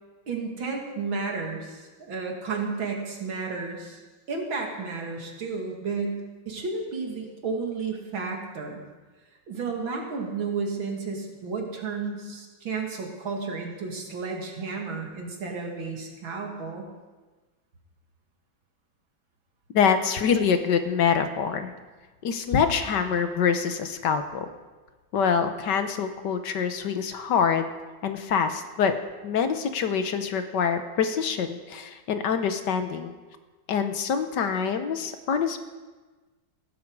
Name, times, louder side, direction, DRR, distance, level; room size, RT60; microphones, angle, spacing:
voice 1, 0.3-4.0 4.3-6.2 6.5-8.8 9.5-16.9, right 4 dB, 90° right, 1 dB, 3.0 m, -32 dB
voice 2, 19.7-21.7 22.2-24.5 25.1-27.7 28.0-29.0 29.2-33.1 33.7-35.6, left 6 dB, 65° left, 8 dB, 1.5 m, -25 dB
16.5 x 13.5 x 4.8 m, 1.3 s
omnidirectional pair, 2.1 m